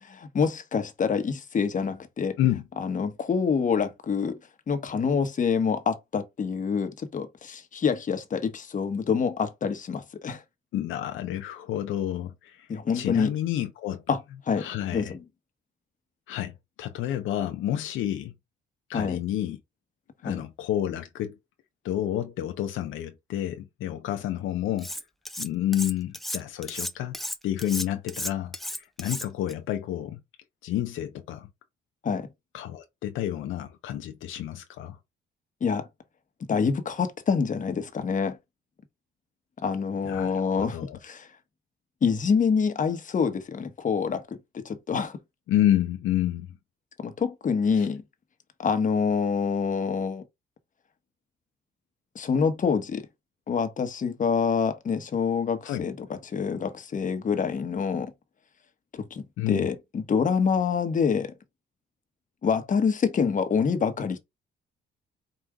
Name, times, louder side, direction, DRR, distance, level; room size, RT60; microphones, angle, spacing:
voice 1, 0.0-2.4 2.8-4.4 4.7-10.4 12.7-13.3 14.1-14.2 14.5-14.7 14.9-15.2 18.9-19.2 20.2-20.4 32.0-32.3 35.6-35.9 36.5-38.4 39.6-41.3 42.0-44.2 44.5-45.2 47.0-48.0 48.6-50.2 52.1-53.0 53.5-58.1 58.9-61.3 62.4-64.2, left 6 dB, 40° left, 1.0 m, -26 dB
voice 2, 10.7-12.7 12.9-14.0 14.6-15.1 16.3-16.5 16.8-18.3 18.9-19.6 20.2-21.4 21.8-24.9 25.4-27.2 27.4-30.2 30.6-31.5 32.5-35.0 40.0-41.0 45.5-46.6 47.8-47.9 55.6-55.8 59.4-59.7, left 12 dB, 80° left, 0.6 m, -29 dB
Cutlery silverware, 24.8-25.5 25.7-29.5, equal, ahead, 0.5 m, -34 dB
4.9 x 2.5 x 3.4 m
cardioid pair, 90°, 20 cm